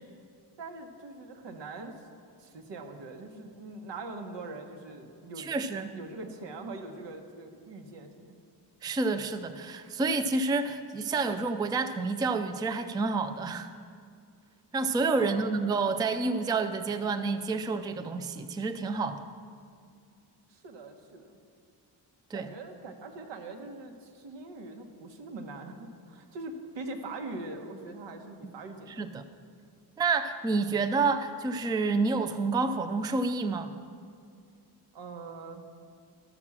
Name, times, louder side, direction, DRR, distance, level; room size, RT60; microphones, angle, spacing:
voice 1, 0.6-2.0 2.4-5.5 5.9-8.4 15.1-15.5 20.5-21.4 22.3-29.1 34.9-35.7, right 3 dB, 85° right, 4 dB, 1.3 m, -42 dB
voice 2, 5.4-5.9 8.8-13.7 14.7-19.2 22.3-22.5 29.0-29.2 30.0-33.7, right 3 dB, 10° right, 9 dB, 0.3 m, -29 dB
12.5 x 6.1 x 7.3 m, 2.3 s
wide cardioid pair, 150°, 42 cm